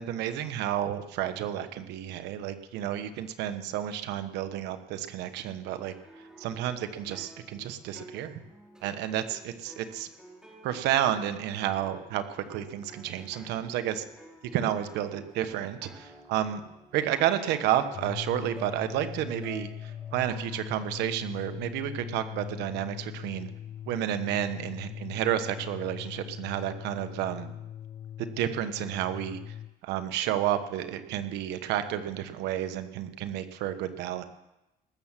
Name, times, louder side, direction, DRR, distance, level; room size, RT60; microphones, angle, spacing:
voice 1, 0.0-5.9 6.4-8.4 8.8-10.1 10.6-14.0 14.5-16.6 16.9-23.5 23.9-27.5 28.2-29.5 29.8-34.2, right 11 dB, 90° right, 10 dB, 1.1 m, -31 dB
sound 1, 5.7-20.9, right 1 dB, 5° right, 3.7 m, -52 dB
sound 2, 17.9-29.7, left 10 dB, 35° left, 0.4 m, -41 dB
19.5 x 7.4 x 7.4 m, 0.94 s
cardioid pair, 110°, 17 cm